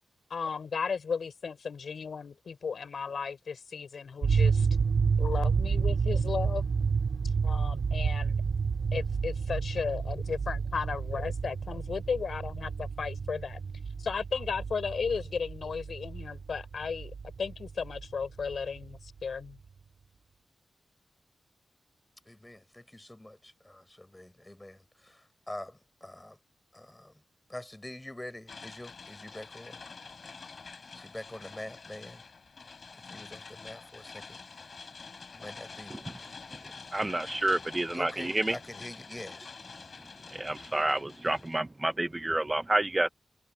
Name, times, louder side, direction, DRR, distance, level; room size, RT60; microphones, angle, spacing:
voice 1, 0.3-4.7 5.2-6.7 7.2-8.4 8.9-13.6 14.0-19.6, left 5 dB, 60° left, 5.4 m, -35 dB
sound 1, 4.2-19.1, right 5 dB, 65° right, 1.7 m, -30 dB
voice 2, 22.3-26.4 26.7-27.1 27.5-29.8 31.0-32.2 33.1-34.4 35.3-36.0 37.9-39.5, left 1 dB, 10° left, 5.2 m, -45 dB
sound 2, 28.5-41.6, left 4 dB, 45° left, 5.6 m, -47 dB
voice 3, 36.9-38.1 38.3-38.5 40.4-43.1, right 2 dB, 15° right, 0.4 m, -29 dB
wide cardioid pair, 155°, 0 cm